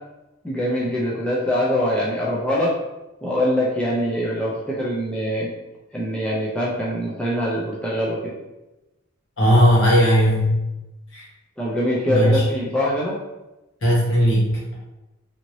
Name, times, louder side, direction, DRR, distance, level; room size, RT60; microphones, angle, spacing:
voice 1, 0.4-2.8 3.2-5.5 5.9-8.3 11.6-13.2, equal, 5° left, -6 dB, 0.4 m, -23 dB
voice 2, 9.4-10.6 11.1-11.2 12.1-12.4 13.8-14.7, equal, 65° left, -5 dB, 1.1 m, -17 dB
2.7 x 2.6 x 3.0 m, 1.0 s
head